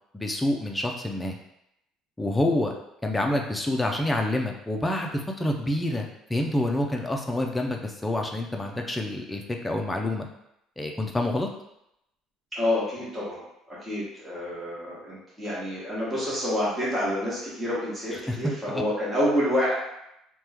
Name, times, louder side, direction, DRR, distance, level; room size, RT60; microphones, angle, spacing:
voice 1, 0.1-1.4 2.2-2.7 3.0-10.3 10.8-11.5 18.1-18.8, left 1 dB, 5° left, 1 dB, 0.3 m, -27 dB
voice 2, 12.5-13.4 13.7-19.7, left 1 dB, 10° right, -8 dB, 1.0 m, -28 dB
2.9 x 2.2 x 3.4 m, 0.82 s
cardioid pair, 150°, 0 cm